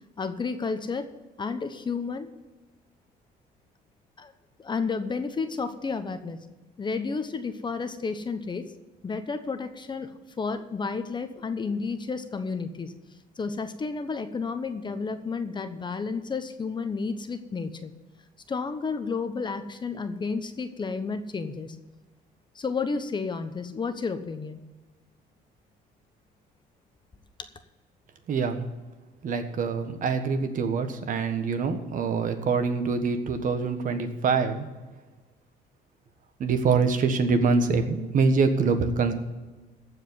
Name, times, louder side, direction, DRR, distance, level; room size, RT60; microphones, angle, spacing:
voice 1, 0.2-1.1 1.4-2.3 4.2-4.3 4.6-6.4 6.8-8.7 9.0-12.9 13.4-17.9 18.5-21.8 22.5-24.6, left 4 dB, 25° left, 9 dB, 1.0 m, -31 dB
voice 2, 28.3-28.6 29.2-34.7 36.4-39.1, right 4 dB, 50° right, 8 dB, 1.4 m, -25 dB
15.0 x 5.0 x 9.4 m, 1.2 s
cardioid pair, 110°, 17 cm